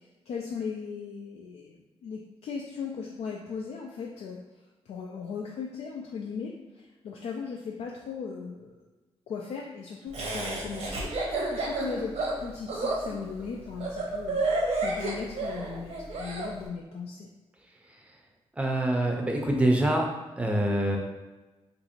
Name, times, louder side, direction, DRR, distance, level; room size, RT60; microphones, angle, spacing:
voice 1, 0.3-1.8 2.0-4.4 4.9-6.6 7.0-8.8 9.3-14.4 14.8-17.3, left 5 dB, 80° left, -1 dB, 0.4 m, -37 dB
Laughter, 10.1-16.5, right 2 dB, 85° right, 0.8 m, -30 dB
voice 2, 18.6-20.0 20.4-21.0, right 1 dB, 10° right, 1 dB, 0.5 m, -25 dB
2.9 x 2.6 x 4.2 m, 1.1 s
wide cardioid pair, 150°, 11 cm